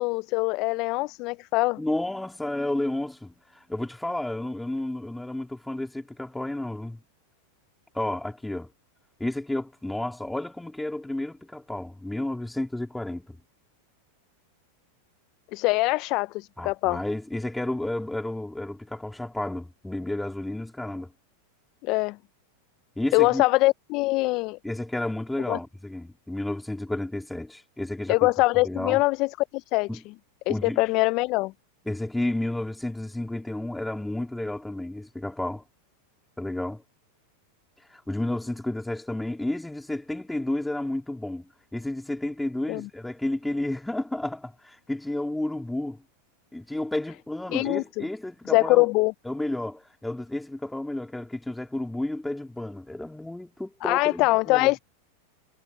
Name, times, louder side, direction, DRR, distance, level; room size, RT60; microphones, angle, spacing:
voice 1, 0.0-1.8 15.5-17.0 21.8-22.2 23.1-24.6 25.5-25.6 28.1-29.9 30.5-31.5 42.7-42.8 47.5-48.0 48.5-49.1 53.8-54.8, left 23 dB, 45° left, 0.3 m, -23 dB
voice 2, 1.8-7.0 7.9-8.7 9.2-13.4 16.6-21.1 23.0-23.4 24.6-28.2 28.6-29.0 29.9-30.0 30.5-30.8 31.9-35.6 36.4-36.8 37.9-46.0 46.5-48.9 49.2-54.7, left 1 dB, 5° left, 3.0 m, -31 dB
supercardioid pair, 135°, 0 cm